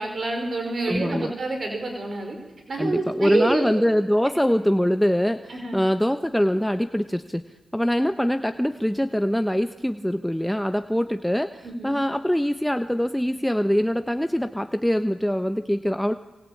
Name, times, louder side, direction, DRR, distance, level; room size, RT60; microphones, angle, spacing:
voice 1, 0.0-2.4 2.7-3.6 4.2-4.3 5.5-5.8 11.6-11.9, right 2 dB, 55° right, 3 dB, 5.1 m, -27 dB
voice 2, 0.9-1.3 2.8-7.4 7.7-16.1, equal, 5° left, 8 dB, 1.1 m, -23 dB
27.0 x 25.5 x 8.7 m, 1.2 s
cardioid pair, 50°, 0 cm